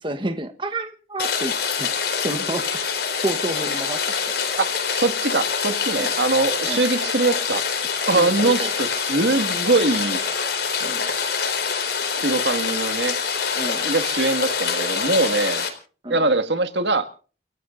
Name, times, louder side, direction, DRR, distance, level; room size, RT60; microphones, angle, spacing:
voice 1, 0.0-2.7 3.2-4.2 6.0-6.1 6.6-6.8 8.1-8.7 10.8-11.1 13.6-13.9 16.0-16.2, right 2 dB, 30° right, 8 dB, 1.1 m, -30 dB
Rain, 1.2-15.7, left 6 dB, 70° left, 4.2 m, -25 dB
voice 2, 4.9-10.2 12.1-13.2 13.8-15.6 16.1-17.0, right 2 dB, 80° right, 8 dB, 1.9 m, -22 dB
29.5 x 16.0 x 2.6 m, 0.39 s
head